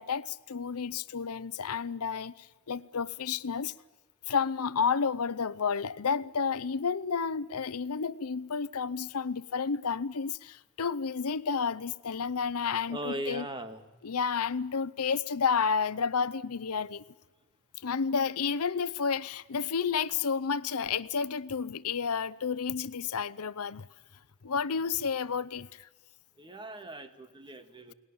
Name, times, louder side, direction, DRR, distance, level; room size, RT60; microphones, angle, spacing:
voice 1, 0.0-3.7 4.3-13.5 14.0-17.0 17.8-23.9 24.4-25.9, left 6 dB, 75° left, 0.7 m, -31 dB
voice 2, 12.9-13.8 26.4-27.9, right 1 dB, 20° right, 1.7 m, -39 dB
30.0 x 19.5 x 7.1 m
head